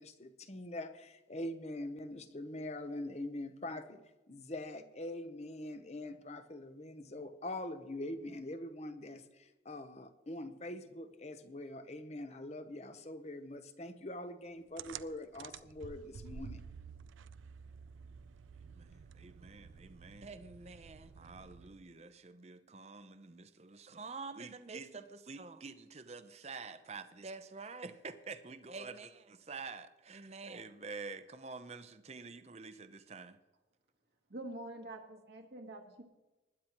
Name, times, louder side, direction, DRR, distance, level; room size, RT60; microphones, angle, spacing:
voice 1, 0.0-4.0 4.3-16.6, left 1 dB, 35° left, 0.8 m, -43 dB
sound 1, 14.8-21.9, right 6 dB, 90° right, 0.4 m, -51 dB
voice 2, 18.7-33.4, right 4 dB, 35° right, 0.7 m, -47 dB
voice 3, 34.3-36.0, right 1 dB, 60° right, 1.3 m, -46 dB
20.0 x 10.0 x 3.0 m
head